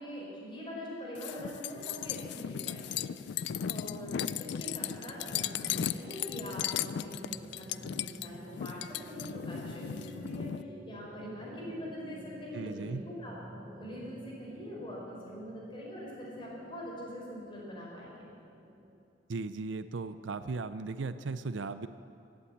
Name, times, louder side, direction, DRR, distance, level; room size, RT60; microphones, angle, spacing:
voice 1, 0.0-10.5 10.8-18.3, equal, 25° left, -4 dB, 4.3 m, -43 dB
sound 1, 1.2-10.6, left 9 dB, 60° left, 0.3 m, -36 dB
sound 2, 3.4-19.0, right 1 dB, 25° right, 0.9 m, -51 dB
voice 2, 12.5-13.0 19.3-21.9, right 3 dB, 70° right, 12 dB, 0.5 m, -37 dB
16.0 x 8.7 x 8.5 m, 2.5 s
head